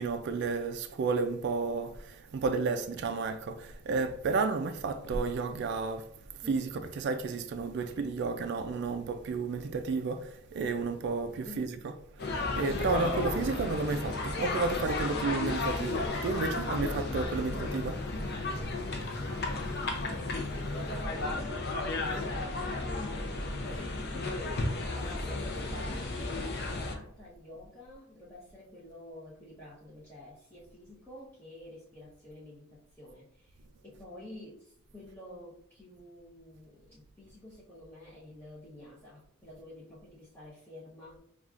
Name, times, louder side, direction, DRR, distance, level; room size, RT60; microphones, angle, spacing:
voice 1, 0.0-6.1 6.4-18.0, right 4 dB, 55° right, 0.3 m, -32 dB
voice 2, 11.4-11.8 15.1-15.3 20.9-21.7 22.0-33.6 33.8-41.2, left 1 dB, 10° left, 0.7 m, -49 dB
sound 1, 12.2-27.0, left 2 dB, 50° left, 0.6 m, -33 dB
5.6 x 2.4 x 2.4 m
head